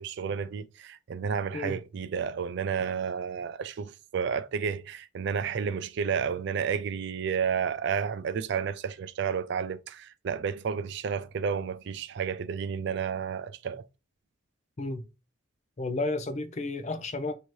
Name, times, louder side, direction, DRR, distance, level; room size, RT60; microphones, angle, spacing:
voice 1, 0.0-13.9, right 6 dB, 60° right, 0.3 m, -31 dB
voice 2, 15.8-17.3, left 2 dB, 35° left, 0.5 m, -32 dB
3.0 x 2.7 x 4.5 m
head